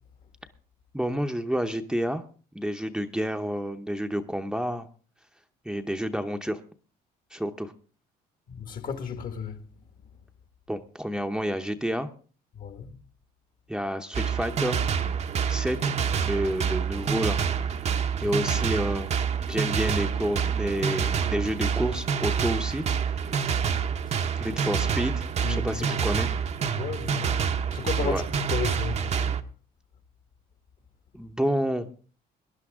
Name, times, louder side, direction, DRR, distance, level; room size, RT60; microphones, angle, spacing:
voice 1, 0.9-2.2 2.5-4.9 5.6-6.6 7.3-7.7 10.7-12.1 13.7-14.8 15.5-15.9 16.2-19.1 19.5-23.3 24.4-26.3 28.0-28.2 31.1-31.9, equal, 5° right, 0.8 m, -29 dB
voice 2, 8.5-9.6 12.5-13.0 18.2-18.3 25.4-25.8 26.7-27.4 27.7-29.4, left 7 dB, 55° left, 1.8 m, -34 dB
sound 1, 14.1-29.4, right 7 dB, 40° right, 0.8 m, -27 dB
18.5 x 11.0 x 3.6 m
cardioid pair, 110°, 17 cm